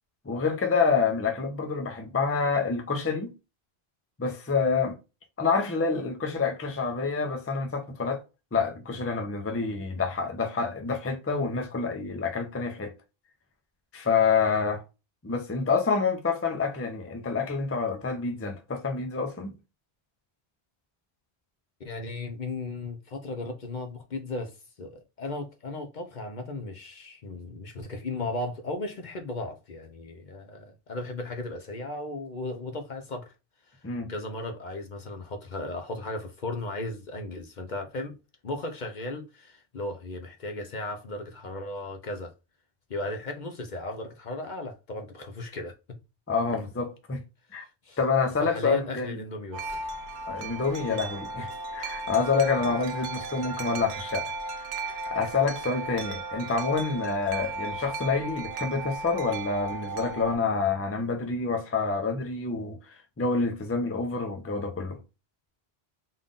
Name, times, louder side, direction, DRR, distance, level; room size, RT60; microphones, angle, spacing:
voice 1, 0.3-3.3 4.2-5.0 5.4-8.2 8.5-12.9 13.9-14.8 15.2-19.6 33.8-34.1 46.3-47.2 47.5-47.7 48.0-49.2 50.3-54.3 54.7-62.8 63.2-65.0, left 4 dB, 15° left, 0.5 m, -27 dB
voice 2, 21.8-33.3 33.7-33.8 34.1-38.2 38.4-42.3 42.9-46.0 47.8-48.0 48.4-49.8 50.9-51.0 52.6-52.7, left 2 dB, 50° left, 0.8 m, -36 dB
Wind chime, 49.5-60.4, right 3 dB, 60° right, 0.6 m, -36 dB
3.7 x 2.5 x 3.7 m
omnidirectional pair, 1.1 m